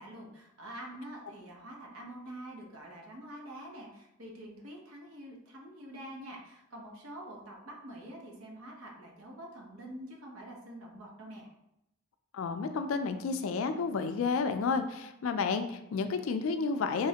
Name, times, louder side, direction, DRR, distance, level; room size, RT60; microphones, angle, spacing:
voice 1, 0.0-11.5, right 1 dB, 90° right, -1 dB, 0.9 m, -46 dB
voice 2, 12.3-17.1, left 4 dB, 80° left, 8 dB, 0.4 m, -31 dB
3.4 x 3.2 x 2.8 m, 0.83 s
head